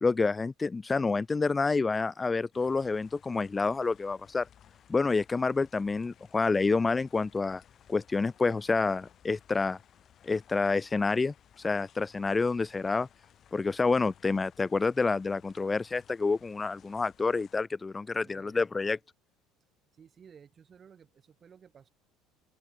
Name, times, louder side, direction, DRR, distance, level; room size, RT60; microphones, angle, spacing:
voice 1, 0.0-4.5 4.9-7.6 7.9-9.8 10.2-11.3 11.6-13.1 13.5-19.0, left 4 dB, 20° left, 0.3 m, -28 dB
sound 1, 2.5-17.6, left 9 dB, 45° left, 4.8 m, -60 dB
voice 2, 18.2-18.6 19.9-21.9, right 7 dB, 35° right, 5.7 m, -55 dB
open air
figure-of-eight pair, 65°, 0 cm